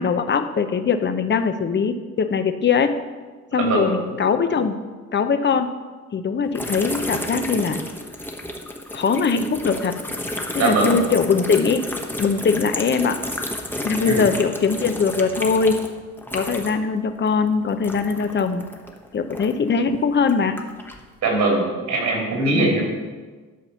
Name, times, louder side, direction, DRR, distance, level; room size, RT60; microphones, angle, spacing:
voice 1, 0.0-2.9 3.5-4.8 5.1-5.7 6.1-7.8 8.9-9.9 10.5-11.9 12.2-13.2 13.8-15.8 16.3-18.6 19.1-20.6 22.5-22.8, left 5 dB, 35° left, 9 dB, 0.8 m, -21 dB
sound 1, 6.5-16.9 17.2-19.7 20.2-21.0, left 1 dB, 5° left, 1.1 m, -31 dB
voice 2, 10.6-11.0 14.0-14.2 21.2-22.8, right 2 dB, 75° right, -1 dB, 3.3 m, -21 dB
11.0 x 4.1 x 6.9 m, 1.4 s
cardioid pair, 90°, 30 cm